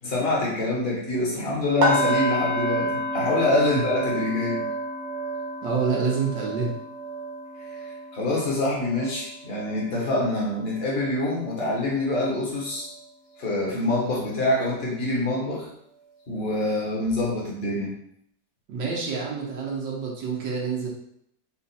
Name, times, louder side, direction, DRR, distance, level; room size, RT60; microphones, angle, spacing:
voice 1, 0.0-4.6 7.6-12.9 13.4-15.7 16.3-17.9, left 2 dB, 40° left, -3 dB, 1.2 m, -26 dB
sound 1, 1.8-11.7 12.1-12.4 12.8-12.9, right 1 dB, 60° right, 1.3 m, -30 dB
voice 2, 5.6-6.7 18.7-20.9, right 5 dB, 80° right, -3 dB, 1.6 m, -27 dB
4.4 x 2.4 x 4.0 m, 0.72 s
omnidirectional pair, 1.9 m